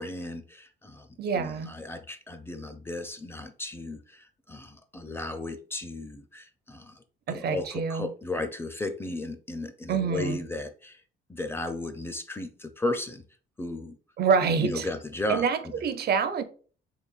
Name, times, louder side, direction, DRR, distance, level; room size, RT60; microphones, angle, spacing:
voice 1, 0.0-11.0 11.3-13.2 13.6-14.0 14.6-15.7, left 2 dB, 10° left, 0.5 m, -35 dB
voice 2, 1.2-1.7 7.3-8.1 9.9-10.4 14.2-14.9 15.3-16.4, right 6 dB, 55° right, 0.5 m, -26 dB
3.9 x 3.3 x 2.3 m
cardioid pair, 90°, 20 cm